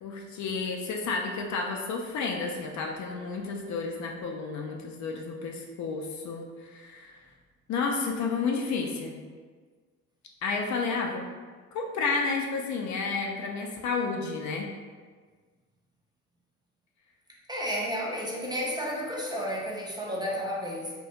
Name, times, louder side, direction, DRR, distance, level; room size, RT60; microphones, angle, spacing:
voice 1, 0.0-7.1 7.7-9.2 10.4-11.3 11.7-14.7, left 4 dB, 45° left, 1 dB, 0.4 m, -31 dB
voice 2, 17.5-20.9, equal, 10° right, -4 dB, 0.4 m, -32 dB
2.3 x 2.2 x 2.8 m, 1.5 s
hypercardioid pair, 55°, 40 cm